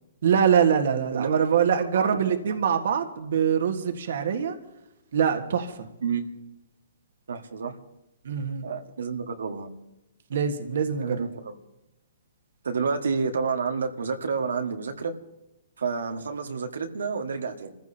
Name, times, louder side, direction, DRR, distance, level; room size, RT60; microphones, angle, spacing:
voice 1, 0.2-4.6 5.1-5.9 8.3-8.7 10.3-11.3, right 7 dB, 65° right, 5 dB, 1.6 m, -24 dB
voice 2, 1.1-1.7 1.9-2.2 6.0-6.3 7.3-7.7 8.6-9.7 11.0-11.6 12.6-15.1 15.8-17.8, right 5 dB, 90° right, 3 dB, 1.7 m, -29 dB
27.5 x 15.5 x 2.9 m, 0.93 s
hypercardioid pair, 155°, 0 cm